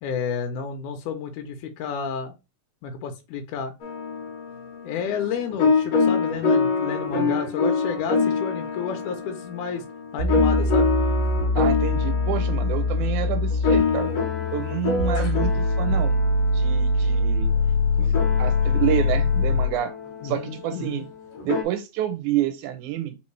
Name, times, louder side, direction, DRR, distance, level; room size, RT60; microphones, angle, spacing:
voice 1, 0.0-2.3 2.8-3.7 4.8-9.9 10.1-10.9 15.5-15.6 20.2-21.0, left 6 dB, 85° left, 2.1 m, -31 dB
sound 1, 3.8-21.6, left 4 dB, 65° left, 1.9 m, -26 dB
sound 2, 10.2-19.8, left 2 dB, 65° right, 1.7 m, -23 dB
voice 2, 11.6-14.1 14.5-16.2 16.5-17.5 18.0-19.9 20.2-21.1 21.4-23.2, right 13 dB, 80° right, 2.1 m, -28 dB
4.3 x 3.5 x 3.1 m
omnidirectional pair, 3.5 m